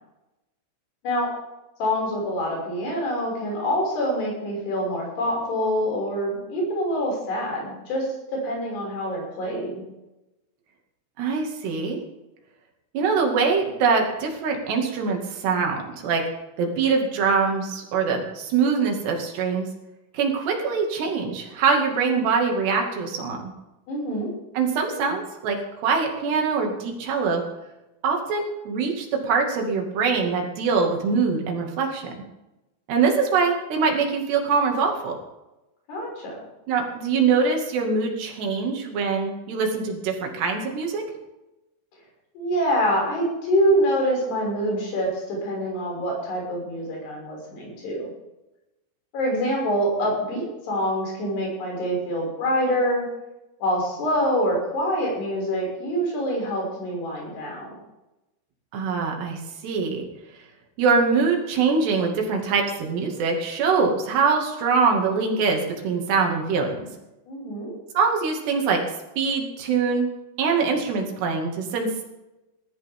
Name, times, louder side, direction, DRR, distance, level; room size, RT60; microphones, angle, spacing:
voice 1, 1.8-9.8 23.9-24.3 35.9-36.4 42.3-48.1 49.1-53.1 53.6-57.7 67.3-67.7, equal, 55° left, -1 dB, 8.0 m, -25 dB
voice 2, 11.2-12.0 12.9-16.2 16.6-19.7 20.1-23.4 24.5-27.4 28.0-32.1 32.9-35.2 36.7-41.0 58.7-60.1 60.8-66.8 67.9-68.8 69.2-70.1 70.4-72.0, right 5 dB, 60° right, 1 dB, 4.1 m, -23 dB
19.0 x 13.5 x 3.7 m, 0.97 s
omnidirectional pair, 5.9 m